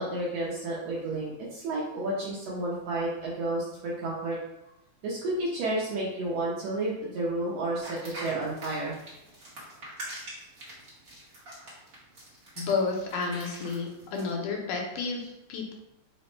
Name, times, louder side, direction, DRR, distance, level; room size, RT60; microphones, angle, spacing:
voice 1, 0.0-4.4 5.0-9.0, right 2 dB, 75° right, -5 dB, 1.5 m, -31 dB
sound 1, 7.8-14.3, right 1 dB, 55° right, 0.9 m, -43 dB
voice 2, 12.6-15.7, left 4 dB, 80° left, 1 dB, 2.2 m, -31 dB
5.0 x 2.1 x 4.2 m, 0.89 s
omnidirectional pair, 3.7 m